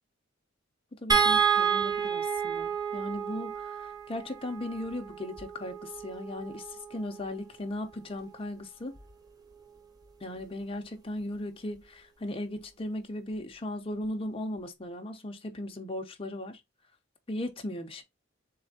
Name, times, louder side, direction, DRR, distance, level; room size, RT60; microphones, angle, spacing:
voice 1, 1.0-9.0 10.2-16.6 17.3-18.0, left 1 dB, 30° left, 0.7 m, -37 dB
sound 1, 1.1-7.4 8.9-9.1 9.5-9.6, right 7 dB, 20° right, 0.7 m, -30 dB
3.4 x 3.2 x 3.9 m
head